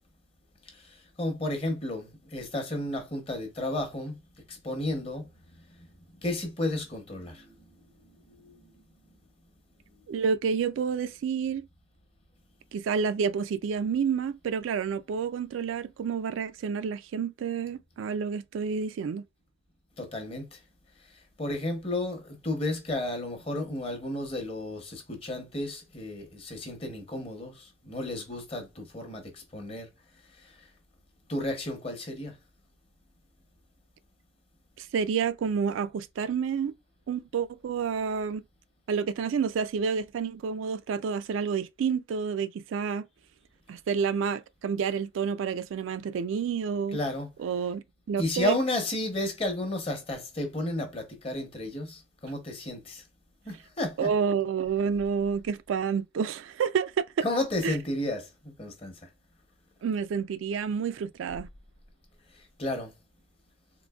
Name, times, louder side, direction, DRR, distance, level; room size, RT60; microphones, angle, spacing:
voice 1, 0.7-4.2 4.5-5.3 5.8-5.9 6.2-7.5 8.0-8.7 20.0-20.6 21.4-29.9 30.4-30.5 31.3-32.4 46.9-47.3 48.2-53.0 53.5-54.1 57.2-58.9 62.6-62.9, left 1 dB, 30° left, 0.8 m, -32 dB
voice 2, 10.1-11.7 12.7-19.3 34.8-36.7 37.1-38.4 38.9-43.1 43.7-47.0 47.4-48.5 54.0-57.2 57.6-57.8 59.8-61.5, right 6 dB, 85° right, 0.3 m, -29 dB
3.8 x 2.5 x 2.3 m
head